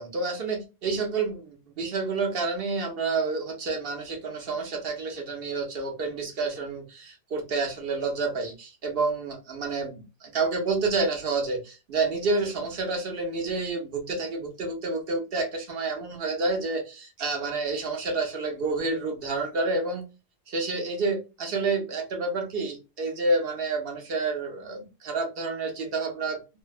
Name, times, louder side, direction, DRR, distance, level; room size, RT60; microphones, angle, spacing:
voice 1, 0.0-20.0 20.5-26.4, right 3 dB, 60° right, 0.9 m, -29 dB
2.7 x 2.1 x 2.4 m
omnidirectional pair, 1.2 m